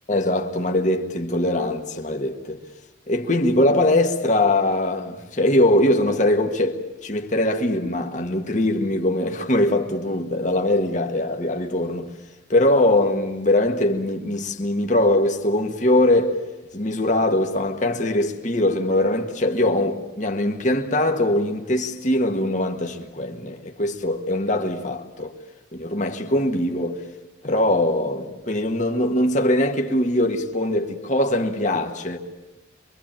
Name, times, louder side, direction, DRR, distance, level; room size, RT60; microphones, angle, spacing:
voice 1, 0.1-2.6 3.1-12.1 12.5-16.4 16.7-25.3 25.7-27.0 27.4-32.2, left 1 dB, 40° left, 1.7 m, -22 dB
25.5 x 24.0 x 9.0 m
head